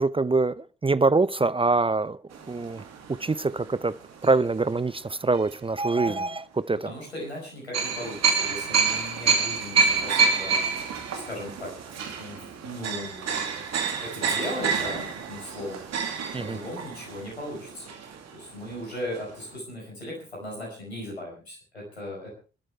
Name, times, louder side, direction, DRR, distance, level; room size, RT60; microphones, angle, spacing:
voice 1, 0.0-2.8 3.1-4.0 4.2-6.9 16.3-16.6, right 3 dB, 15° right, 0.7 m, -24 dB
sound 1, 2.3-4.8 5.4-5.5 7.7-18.5 18.8-18.9 19.1-19.3, right 5 dB, 55° right, 2.4 m, -28 dB
voice 2, 6.0-6.3 6.8-13.6 14.0-15.8 16.4-17.9 18.3-22.3, left 1 dB, 90° left, 5.6 m, -38 dB
27.5 x 12.5 x 3.4 m
figure-of-eight pair, 40°, 31 cm